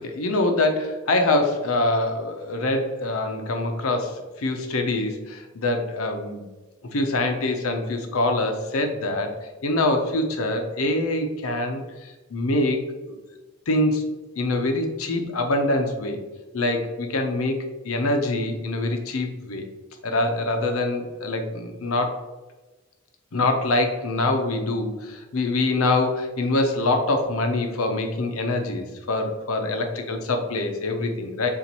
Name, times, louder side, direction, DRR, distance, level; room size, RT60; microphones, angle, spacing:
voice 1, 0.0-6.4 6.9-9.3 9.6-13.2 13.7-14.1 14.4-16.2 16.5-17.6 17.8-19.7 20.0-22.3 23.3-31.5, left 2 dB, 80° left, 5 dB, 0.7 m, -24 dB
6.9 x 2.5 x 2.9 m, 1.2 s
head